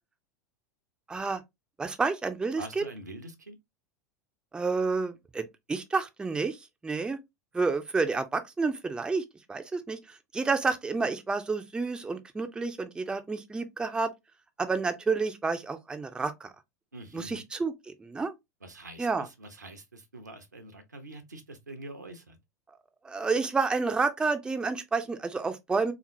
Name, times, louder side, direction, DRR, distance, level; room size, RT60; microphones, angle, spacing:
voice 1, 1.1-1.4 1.8-2.8 4.5-6.6 6.8-7.2 7.5-9.2 9.5-14.1 14.6-16.5 17.1-17.7 18.0-18.3 19.0-19.3 23.0-25.9, right 4 dB, 10° right, 0.5 m, -29 dB
voice 2, 2.6-3.6 16.9-17.4 18.6-22.4, right 2 dB, 80° right, 0.7 m, -45 dB
3.5 x 3.0 x 2.7 m
figure-of-eight pair, 85°, 9 cm